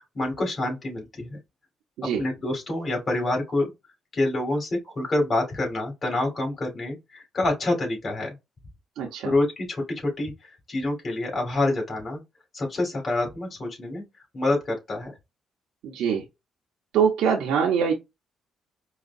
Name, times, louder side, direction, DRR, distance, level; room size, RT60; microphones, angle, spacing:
voice 1, 0.1-1.4 2.0-3.7 4.1-8.4 9.2-12.2 12.5-14.0 14.3-15.1, left 2 dB, 40° left, 2.4 m, -27 dB
voice 2, 9.0-9.3 15.8-16.2 16.9-17.9, right 7 dB, 85° right, 0.7 m, -23 dB
4.8 x 2.3 x 2.5 m
cardioid pair, 90°, 0 cm